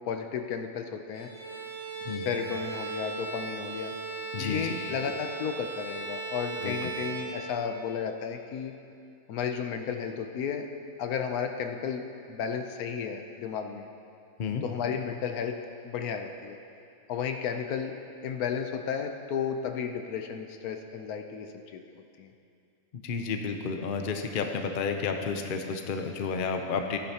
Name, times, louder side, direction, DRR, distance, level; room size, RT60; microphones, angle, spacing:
voice 1, 0.1-1.3 2.1-3.9 4.4-8.7 9.3-10.7 11.0-12.0 12.3-13.9 14.6-15.6 15.8-16.6 17.1-17.9 18.2-21.8 22.2-22.3, left 7 dB, 80° left, 5 dB, 1.2 m, -33 dB
Bowed string instrument, 1.1-7.9, right 4 dB, 60° right, 2.8 m, -37 dB
voice 2, 4.3-4.8 6.6-6.9 14.4-14.6 22.9-27.0, left 5 dB, 50° left, 5 dB, 0.7 m, -31 dB
15.0 x 10.0 x 2.9 m, 2.5 s
omnidirectional pair, 1.6 m